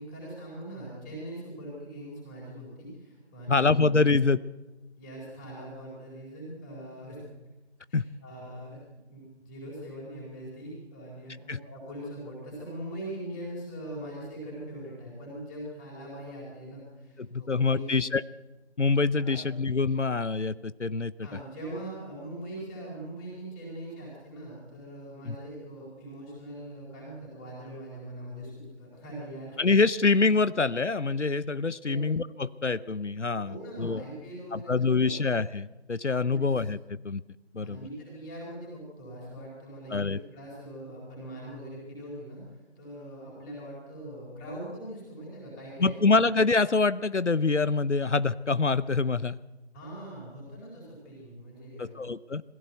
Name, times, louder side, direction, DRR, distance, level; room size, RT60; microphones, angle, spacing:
voice 1, 0.0-3.9 5.0-7.2 7.9-18.0 19.1-19.5 21.2-29.6 31.8-32.0 33.4-35.2 36.2-36.5 37.6-46.0 49.7-52.1, right 1 dB, 5° left, -4 dB, 4.1 m, -42 dB
voice 2, 3.5-4.4 7.9-8.0 11.5-11.6 17.2-18.2 18.8-21.1 25.3-25.4 29.6-34.0 34.5-36.8 37.0-37.2 37.5-37.8 39.9-40.2 45.8-49.4 51.8-52.4, left 4 dB, 90° left, 16 dB, 0.8 m, -25 dB
21.5 x 15.5 x 8.1 m, 1.1 s
figure-of-eight pair, 165°, 34 cm